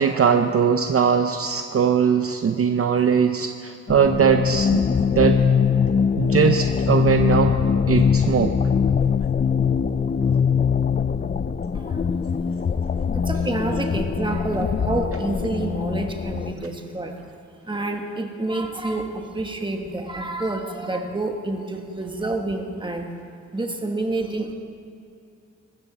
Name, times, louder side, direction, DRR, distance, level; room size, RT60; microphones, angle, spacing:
voice 1, 0.0-4.8 5.2-5.4 6.2-7.5 7.9-8.6, right 7 dB, 50° right, 6 dB, 0.6 m, -20 dB
sound 1, 3.9-16.5, left 6 dB, 30° left, 0.4 m, -22 dB
voice 2, 11.7-12.4 13.1-17.2 17.6-23.1 23.5-24.5, right 2 dB, 15° right, 3 dB, 1.3 m, -28 dB
23.0 x 13.0 x 4.1 m, 2.5 s
wide cardioid pair, 145°, 30 cm